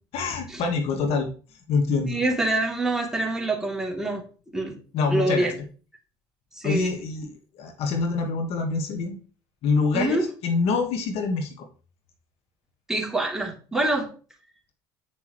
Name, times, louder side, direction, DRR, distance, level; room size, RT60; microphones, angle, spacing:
voice 1, 0.1-1.3 1.7-2.2 4.9-5.5 6.6-9.2 9.6-11.7, left 4 dB, 60° left, 4 dB, 1.7 m, -25 dB
voice 2, 2.1-4.2 4.5-4.7 5.1-5.5 6.6-6.9 9.9-10.2 12.9-14.1, right 2 dB, 5° right, -1 dB, 3.1 m, -25 dB
9.5 x 6.3 x 3.2 m, 0.37 s
supercardioid pair, 80°, 11 cm